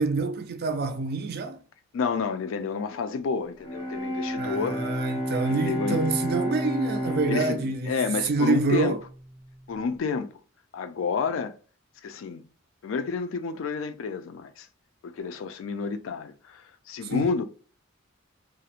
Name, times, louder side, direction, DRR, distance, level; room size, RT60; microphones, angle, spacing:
voice 1, 0.0-1.6 4.4-7.9 8.2-9.0 17.0-17.3, right 3 dB, 50° right, 0.4 m, -27 dB
voice 2, 1.9-4.8 5.5-6.1 7.3-8.9 9.7-10.3 10.7-11.5 12.0-12.4 12.8-14.7 15.0-17.4, left 5 dB, 65° left, 0.3 m, -30 dB
Bowed string instrument, 3.6-9.6, equal, 20° left, 0.5 m, -31 dB
2.4 x 2.0 x 2.8 m
head